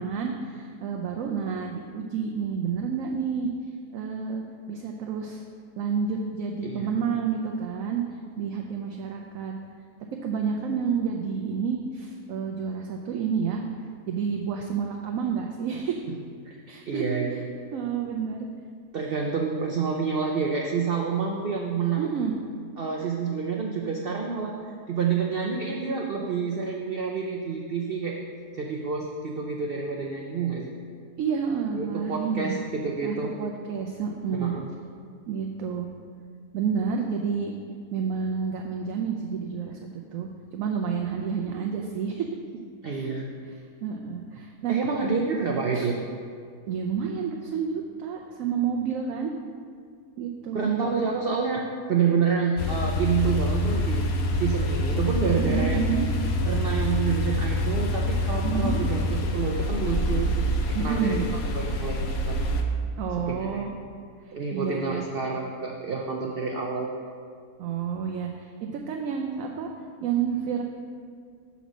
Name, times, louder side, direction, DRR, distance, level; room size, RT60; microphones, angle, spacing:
voice 1, 0.0-3.5 3.9-4.4 4.7-5.4 5.8-8.0 8.4-9.5 10.2-13.6 14.1-16.0 16.7-17.2 17.7-18.5 22.0-22.3 31.2-32.6 33.0-34.6 35.3-35.9 36.5-37.5 37.9-40.3 40.5-42.3 42.9-43.1 43.8-44.8 45.7-45.9 46.7-49.3 50.2-50.7 55.4-56.1 58.4-58.8 60.7-61.3 63.0-63.7 64.3-65.1 67.6-69.7 70.0-70.6, right 6 dB, 70° right, 2 dB, 0.8 m, -29 dB
voice 2, 6.6-7.0 16.9-17.4 18.9-22.0 22.8-24.5 24.9-28.2 28.6-30.7 31.7-33.3 34.3-34.7 42.8-43.3 44.7-46.0 50.5-54.0 54.4-55.8 56.5-60.3 60.7-62.4 63.3-63.6 64.3-66.9, right 5 dB, 85° right, 0 dB, 0.5 m, -28 dB
sound 1, 52.6-62.6, left 1 dB, 65° left, 0.6 m, -26 dB
7.0 x 4.1 x 6.1 m, 2.1 s
omnidirectional pair, 1.7 m